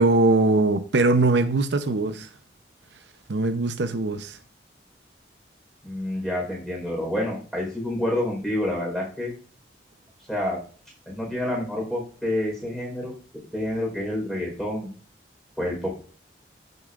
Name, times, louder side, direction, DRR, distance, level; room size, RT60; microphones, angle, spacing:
voice 1, 0.0-2.3 3.3-4.4, right 2 dB, 75° right, 0.7 m, -21 dB
voice 2, 5.8-9.3 10.3-10.6 11.1-13.1 13.5-14.9 15.6-15.9, left 1 dB, ahead, 4.3 m, -28 dB
15.0 x 6.7 x 2.5 m
head